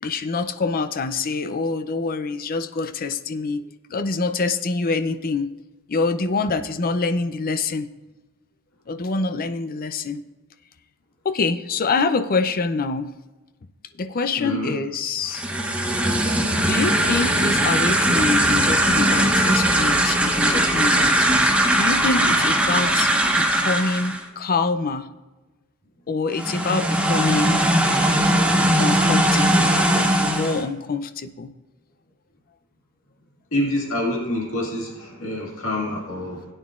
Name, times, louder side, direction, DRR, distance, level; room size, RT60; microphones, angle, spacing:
voice 1, 0.0-5.5 5.9-7.9 8.9-10.2 11.2-13.1 13.9-15.4 16.6-25.1 26.1-27.7 28.8-31.5, left 3 dB, 40° left, 10 dB, 0.5 m, -25 dB
voice 2, 14.4-14.7 33.5-36.5, left 1 dB, 70° left, -2 dB, 1.9 m, -26 dB
sound 1, 15.2-24.2 26.3-30.6, right 1 dB, 5° right, 0.9 m, -19 dB
16.5 x 9.1 x 2.5 m, 1.2 s
head